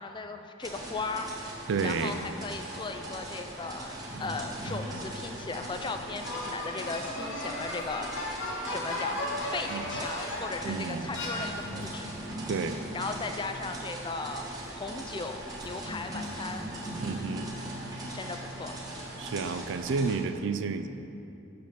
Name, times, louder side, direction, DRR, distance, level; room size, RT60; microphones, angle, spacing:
voice 1, 0.0-1.3 1.8-8.1 8.7-9.2 9.5-12.1 12.9-16.7 18.1-18.8, left 4 dB, 25° left, 7 dB, 0.3 m, -37 dB
sound 1, 0.6-20.2, right 1 dB, 20° right, 1.1 m, -41 dB
voice 2, 1.7-2.2 9.7-9.9 10.7-11.1 12.5-12.8 17.0-17.5 19.2-20.9, right 4 dB, 60° right, 10 dB, 0.4 m, -31 dB
sound 2, 4.1-7.5 11.3-14.7 15.6-19.5, equal, 5° left, 1.2 m, -42 dB
sound 3, 6.2-10.6 11.1-11.9, left 1 dB, 65° left, 1.4 m, -35 dB
6.9 x 5.1 x 5.9 m, 2.7 s
head